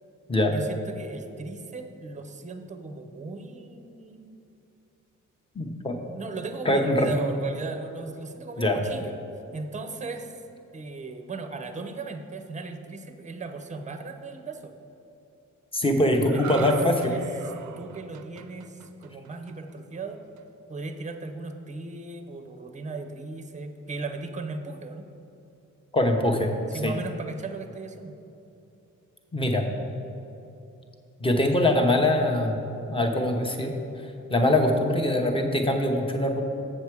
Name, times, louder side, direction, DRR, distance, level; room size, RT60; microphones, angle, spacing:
voice 1, 0.5-4.3 6.1-9.1 9.5-10.4 10.7-14.8 16.3-16.7 17.0-20.2 20.7-25.1 26.7-28.1, right 3 dB, 25° right, 7 dB, 0.6 m, -37 dB
voice 2, 5.6-6.0 6.6-7.1 8.6-8.8 15.7-17.1 25.9-26.5 26.8-26.9 29.3-29.6 31.2-32.6 32.9-33.7 34.3-36.4, left 1 dB, 15° left, 3 dB, 0.8 m, -23 dB
sound 1, 16.2-19.7 20.1-20.4, right 7 dB, 70° right, 0.5 m, -41 dB
7.5 x 7.1 x 4.7 m, 2.8 s
wide cardioid pair, 130°, 31 cm